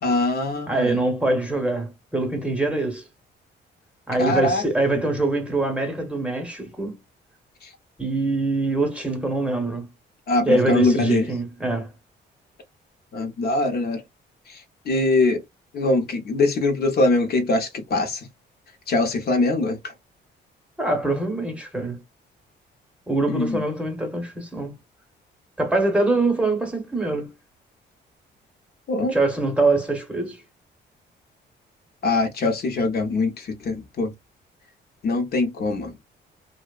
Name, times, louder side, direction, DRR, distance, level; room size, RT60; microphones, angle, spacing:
voice 1, 0.0-1.0 4.2-4.6 10.3-11.2 13.1-14.0 14.9-15.4 15.7-18.2 18.9-19.8 23.3-23.6 28.9-29.1 32.0-34.1 35.0-35.9, left 2 dB, 55° left, 0.7 m, -22 dB
voice 2, 0.7-3.0 4.1-7.0 8.0-9.9 10.5-11.9 20.8-22.0 23.1-24.7 25.6-27.3 29.0-30.4, right 2 dB, 5° right, 0.8 m, -24 dB
2.7 x 2.0 x 2.3 m
cardioid pair, 115°, 19 cm